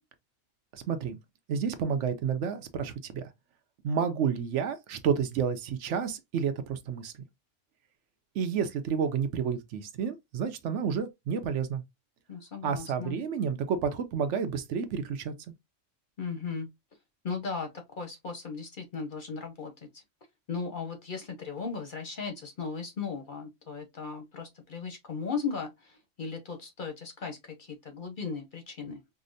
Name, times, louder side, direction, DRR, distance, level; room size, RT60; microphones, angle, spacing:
voice 1, 0.7-1.2 1.5-3.3 3.8-7.1 8.3-11.8 12.6-15.3, right 7 dB, 70° right, 0.9 m, -30 dB
voice 2, 12.3-13.2 16.2-16.7 17.2-17.7 18.0-20.0 20.5-29.0, left 5 dB, 50° left, 0.7 m, -37 dB
4.9 x 2.0 x 2.5 m
omnidirectional pair, 1.3 m